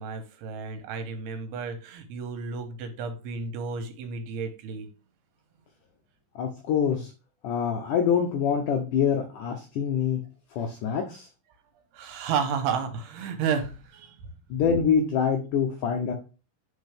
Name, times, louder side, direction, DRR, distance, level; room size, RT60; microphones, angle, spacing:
voice 1, 0.0-4.9 11.9-14.2, right 6 dB, 85° right, 7 dB, 3.0 m, -32 dB
voice 2, 6.4-7.1 7.4-10.2 10.5-11.3 14.5-16.1, left 7 dB, 80° left, 3 dB, 1.9 m, -25 dB
8.2 x 4.6 x 3.4 m, 0.32 s
omnidirectional pair, 4.6 m